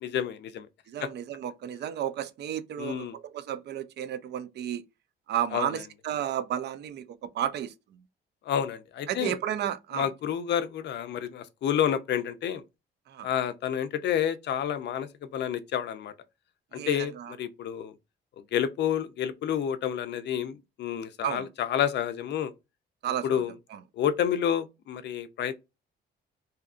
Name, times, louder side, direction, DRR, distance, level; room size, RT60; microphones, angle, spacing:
voice 1, 0.0-0.7 1.0-1.1 2.8-3.1 5.5-5.8 8.5-9.4 9.9-12.6 13.2-16.1 16.7-17.9 18.5-22.5 23.2-23.5 24.0-25.6, left 9 dB, 60° left, 0.4 m, -29 dB
voice 2, 0.9-4.8 5.3-7.7 9.1-10.1 13.1-13.3 16.7-17.3 21.2-21.5 23.0-23.4 23.7-23.8, right 10 dB, 60° right, 0.4 m, -32 dB
2.7 x 2.4 x 2.4 m
cardioid pair, 90°, 20 cm